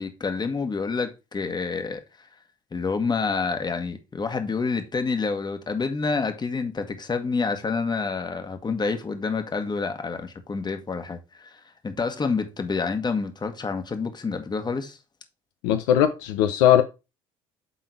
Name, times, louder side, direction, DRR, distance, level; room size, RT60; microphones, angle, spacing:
voice 1, 0.0-2.0 2.7-15.0, left 4 dB, 25° left, 1.5 m, -28 dB
voice 2, 15.6-16.8, left 11 dB, 70° left, 0.8 m, -19 dB
8.4 x 3.7 x 4.7 m
hypercardioid pair, 65°, 17 cm